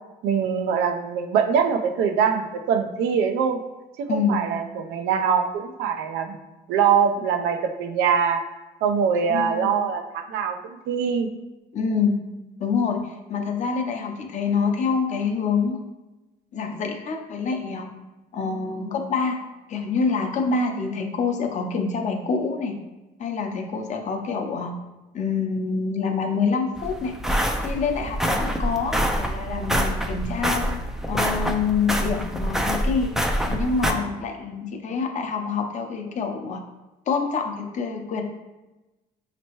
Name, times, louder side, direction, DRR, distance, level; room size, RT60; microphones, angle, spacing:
voice 1, 0.2-3.6 4.0-6.4 6.7-8.4 8.8-11.3, right 7 dB, 85° right, 7 dB, 0.5 m, -23 dB
voice 2, 4.1-4.4 9.1-9.7 11.7-12.2 12.6-15.8 16.5-17.9 18.3-19.4 19.7-22.8 23.2-24.7 25.1-27.1 27.6-30.7 31.1-33.1 33.5-36.6 37.1-38.2, left 5 dB, 45° left, 4 dB, 0.7 m, -26 dB
sound 1, 26.8-33.9, equal, ahead, 0.4 m, -26 dB
5.2 x 3.0 x 3.0 m, 1.1 s
cardioid pair, 110°, 17 cm